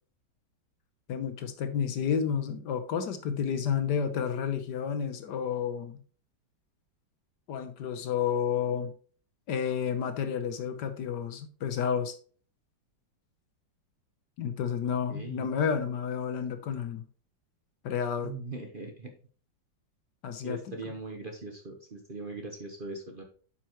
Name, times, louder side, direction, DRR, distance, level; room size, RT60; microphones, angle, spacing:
voice 1, 1.1-6.0 7.5-8.9 9.5-12.2 14.4-17.0 17.8-18.3 20.2-20.6, left 7 dB, 70° left, 9 dB, 1.4 m, -30 dB
voice 2, 15.1-15.5 18.2-19.1 20.4-23.2, right 2 dB, 35° right, 2 dB, 1.0 m, -40 dB
9.3 x 5.7 x 3.0 m, 0.42 s
omnidirectional pair, 2.0 m